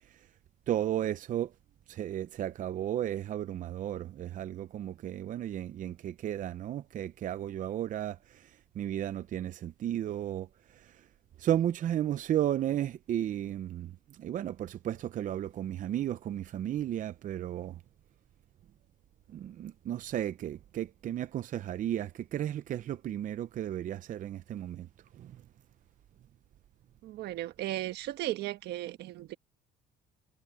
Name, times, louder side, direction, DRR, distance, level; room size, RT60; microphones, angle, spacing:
voice 1, 0.7-1.5 1.9-10.5 10.7-11.0 11.4-13.9 14.2-17.8 19.3-24.9 25.2-25.4, right 11 dB, 50° right, 0.6 m, -34 dB
voice 2, 27.0-29.4, right 15 dB, 80° right, 1.3 m, -36 dB
cardioid pair, 110°, 17 cm